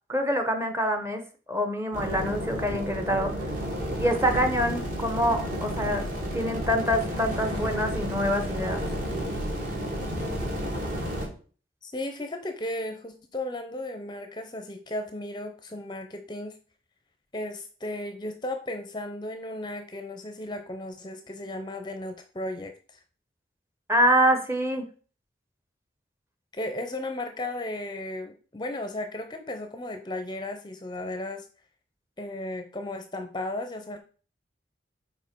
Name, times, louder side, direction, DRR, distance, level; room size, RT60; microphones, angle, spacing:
voice 1, 0.1-1.2 1.5-3.3 4.0-6.0 6.3-8.8 23.9-24.8, equal, 15° right, 6 dB, 0.9 m, -25 dB
sound 1, 1.9-11.3, equal, 45° right, 2.3 m, -31 dB
voice 2, 11.8-16.5 17.3-23.0 26.5-31.5 32.2-34.0, left 1 dB, 25° left, 7 dB, 0.6 m, -35 dB
5.3 x 4.4 x 6.0 m, 0.40 s
head